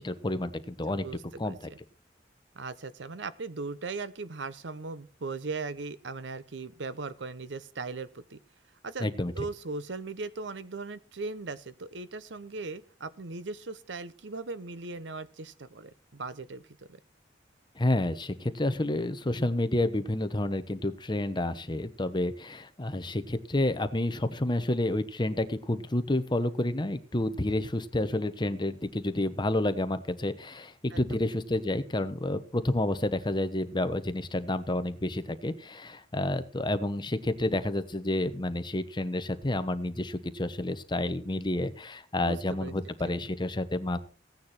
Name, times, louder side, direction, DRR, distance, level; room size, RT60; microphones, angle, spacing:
voice 1, 0.0-1.0 1.4-1.6 9.0-9.5 17.8-44.0, left 1 dB, 25° left, 10 dB, 1.0 m, -30 dB
voice 2, 0.9-1.6 2.5-8.4 8.8-9.1 9.3-17.0 30.9-31.2 42.2-42.8, right 3 dB, 75° right, 15 dB, 0.8 m, -38 dB
16.0 x 9.5 x 4.4 m, 0.38 s
head